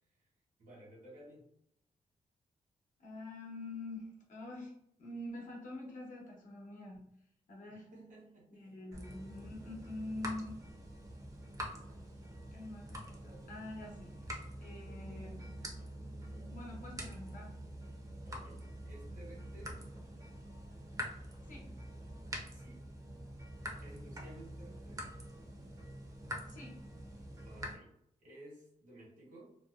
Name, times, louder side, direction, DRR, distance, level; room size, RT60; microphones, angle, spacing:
voice 1, 0.6-1.5 7.7-8.8 16.3-16.6 18.2-19.9 22.5-22.9 23.8-25.1 27.4-29.5, right 1 dB, 70° right, -4 dB, 1.1 m, -55 dB
voice 2, 3.0-4.7 5.0-7.1 7.5-7.9 8.5-10.6 12.5-14.1 14.6-15.4 16.5-17.5 21.5-21.7 26.5-26.8, left 2 dB, 75° left, -2 dB, 0.9 m, -45 dB
sound 1, 8.9-27.8, equal, 25° right, 0.5 m, -46 dB
2.6 x 2.1 x 2.3 m, 0.73 s
cardioid pair, 100°, 14 cm